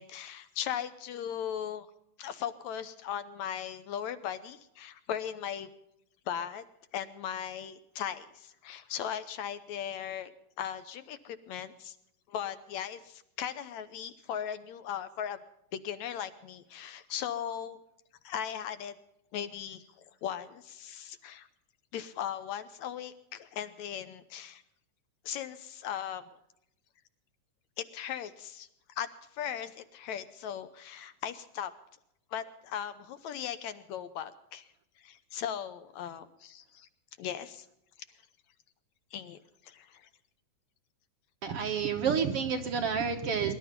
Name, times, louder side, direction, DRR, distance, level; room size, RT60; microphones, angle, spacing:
voice 1, 0.0-1.9 2.2-5.7 6.3-6.6 6.9-10.3 10.6-12.0 12.3-15.4 15.7-17.8 18.2-18.9 19.3-19.8 20.2-21.5 21.9-24.6 25.3-26.3 27.8-28.7 29.0-29.1 29.3-31.7 32.3-34.7 35.0-36.9 37.2-37.7 39.1-40.1, left 9 dB, 70° left, 12 dB, 2.0 m, -38 dB
voice 2, 41.4-43.5, right 6 dB, 60° right, 5 dB, 1.7 m, -29 dB
23.0 x 12.0 x 5.3 m, 0.79 s
omnidirectional pair, 3.6 m